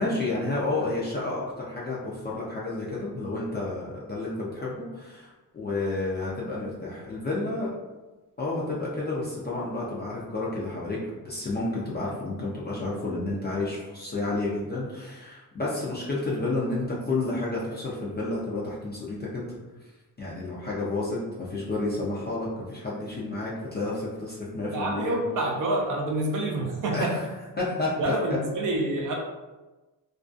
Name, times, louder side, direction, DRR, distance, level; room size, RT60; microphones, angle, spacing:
voice 1, 0.0-7.7 8.4-19.5 20.2-25.2 26.9-27.3 27.6-27.9, left 2 dB, 30° left, -6 dB, 0.4 m, -30 dB
voice 2, 24.7-27.2 28.0-29.1, right 2 dB, 65° right, 0 dB, 0.5 m, -27 dB
2.4 x 2.3 x 2.4 m, 1.1 s
wide cardioid pair, 155°, 35 cm